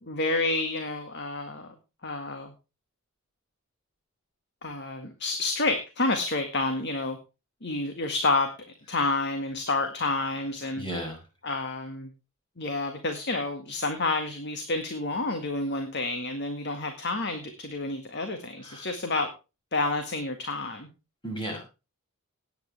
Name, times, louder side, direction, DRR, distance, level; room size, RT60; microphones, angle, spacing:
voice 1, 0.0-1.7 2.0-2.5 4.6-7.2 7.6-8.5 8.9-10.8 11.4-12.1 12.6-19.3 19.7-20.9, left 2 dB, 50° left, 6 dB, 1.9 m, -29 dB
voice 2, 10.8-11.2 18.6-18.9 21.2-21.6, right 1 dB, 20° left, 1 dB, 6.6 m, -34 dB
18.0 x 9.3 x 3.4 m, 0.29 s
head